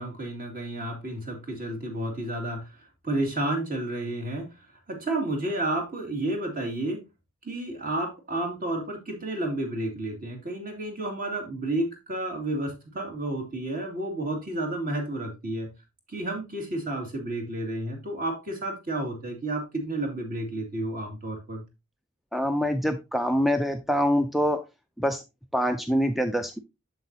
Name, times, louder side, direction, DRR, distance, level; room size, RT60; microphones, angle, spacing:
voice 1, 0.0-2.7 3.0-4.5 4.9-7.0 7.4-15.7 16.1-21.6, right 1 dB, 40° right, 2.3 m, -31 dB
voice 2, 22.3-24.6 25.0-25.2 25.5-26.6, equal, ahead, 0.4 m, -25 dB
7.7 x 7.0 x 2.7 m
head